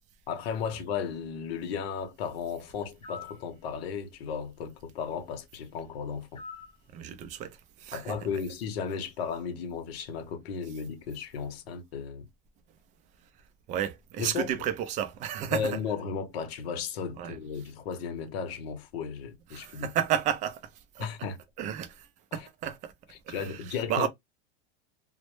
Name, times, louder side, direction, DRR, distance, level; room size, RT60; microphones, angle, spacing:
voice 1, 0.3-6.4 7.9-12.3 14.2-14.5 15.5-19.9 21.0-21.4 22.3-22.5 23.3-24.1, left 6 dB, 70° left, 0.8 m, -35 dB
sound 1, 3.0-3.4 6.4-6.8, left 4 dB, 15° left, 0.7 m, -43 dB
voice 2, 6.9-8.1 13.7-15.8 17.2-17.4 19.5-20.6 21.0-21.1 21.6-22.1 22.3-22.9 23.3-24.1, right 10 dB, 25° right, 0.3 m, -32 dB
2.1 x 2.0 x 2.9 m
supercardioid pair, 130°, 31 cm